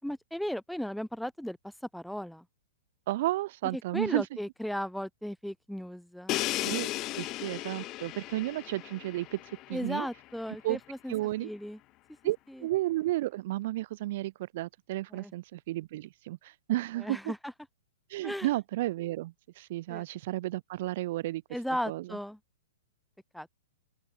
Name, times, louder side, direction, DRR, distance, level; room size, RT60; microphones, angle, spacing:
voice 1, 0.0-1.6 1.9-2.4 3.7-6.4 9.7-11.1 11.4-11.8 12.5-12.7 15.1-15.3 17.0-17.5 18.2-18.5 19.9-20.0 21.5-22.4 23.3-23.5, equal, ahead, 4.6 m, -36 dB
voice 2, 3.1-4.3 6.6-6.9 7.2-10.1 10.6-10.8 11.1-11.5 12.2-17.3 18.1-21.4 21.9-22.1, right 16 dB, 55° right, 1.7 m, -32 dB
Crash cymbal, 6.3-10.1, left 18 dB, 35° left, 1.5 m, -35 dB
open air
hypercardioid pair, 135°, 0 cm